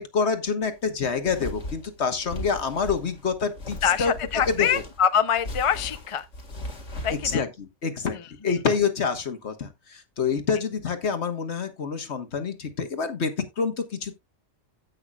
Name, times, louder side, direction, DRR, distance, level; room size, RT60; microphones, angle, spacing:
voice 1, 0.0-4.1 4.6-4.8 7.2-8.2 8.4-14.1, left 5 dB, 60° left, 1.6 m, -27 dB
sound 1, 0.6-7.4, left 1 dB, 85° left, 2.5 m, -38 dB
voice 2, 3.8-6.3 7.0-7.4 8.1-8.6, left 8 dB, 35° left, 0.6 m, -25 dB
16.0 x 5.8 x 2.4 m
omnidirectional pair, 1.3 m